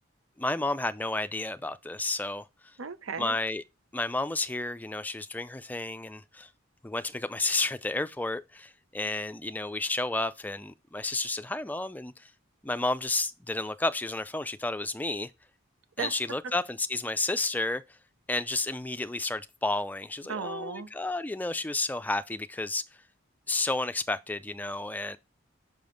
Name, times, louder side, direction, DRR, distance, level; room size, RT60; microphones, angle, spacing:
voice 1, 0.4-2.5 3.2-3.6 3.9-6.5 6.8-12.3 12.6-15.3 16.0-17.8 18.3-22.8 23.5-25.2, left 2 dB, 10° left, 0.3 m, -31 dB
voice 2, 2.8-3.4 16.0-16.2 16.4-16.5 20.3-20.9, right 5 dB, 85° right, 0.8 m, -36 dB
5.5 x 5.2 x 3.9 m
head